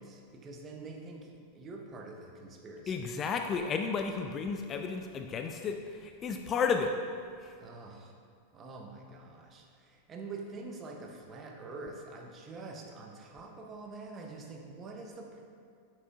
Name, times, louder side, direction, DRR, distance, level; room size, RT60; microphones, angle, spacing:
voice 1, 0.0-3.1 7.6-8.1 8.5-15.4, right 3 dB, 25° right, 1 dB, 0.9 m, -46 dB
voice 2, 2.9-6.9, left 5 dB, 25° left, 5 dB, 0.4 m, -32 dB
9.4 x 6.1 x 2.4 m, 2.2 s
figure-of-eight pair, 90°, 0 cm